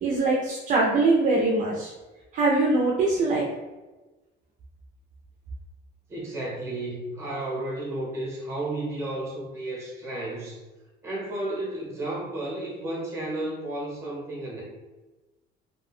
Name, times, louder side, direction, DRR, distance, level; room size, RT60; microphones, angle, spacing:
voice 1, 0.0-1.9 2.3-3.4, right 3 dB, 40° right, -3 dB, 0.4 m, -22 dB
voice 2, 6.1-10.6 11.0-14.6, right 1 dB, 15° right, -3 dB, 0.9 m, -32 dB
2.6 x 2.2 x 3.4 m, 1.2 s
cardioid pair, 170°, 20 cm